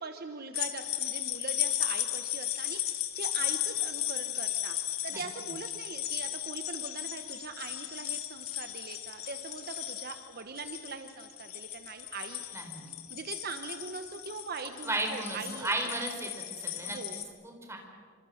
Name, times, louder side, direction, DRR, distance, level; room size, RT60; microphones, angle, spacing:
voice 1, 0.0-4.8 5.0-12.4 13.1-15.7 16.8-17.2, right 4 dB, 45° right, 7 dB, 1.0 m, -42 dB
sound 1, 0.5-17.2, left 12 dB, 90° left, 1.7 m, -35 dB
voice 2, 12.5-12.9 14.8-16.3 16.6-17.0 17.4-17.8, right 2 dB, 15° right, 2 dB, 4.3 m, -34 dB
27.0 x 26.0 x 6.5 m, 2.1 s
head